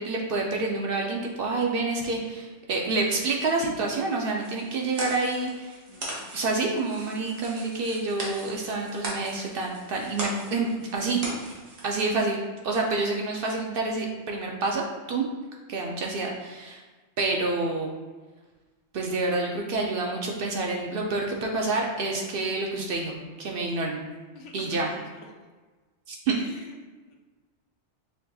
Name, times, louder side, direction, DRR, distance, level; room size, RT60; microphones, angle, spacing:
voice 1, 0.0-5.8 6.3-11.2 11.8-15.3 15.7-16.8 17.2-17.9 18.9-24.1 24.5-24.9 26.1-26.4, right 3 dB, 60° right, 0 dB, 0.6 m, -28 dB
sound 1, 4.4-11.9, right 1 dB, 85° right, 1.3 m, -39 dB
voice 2, 5.9-6.3 24.3-25.0 26.3-26.8 27.1-27.2, left 3 dB, 85° left, 1 dB, 1.0 m, -47 dB
5.7 x 2.7 x 2.3 m, 1.3 s
omnidirectional pair, 1.2 m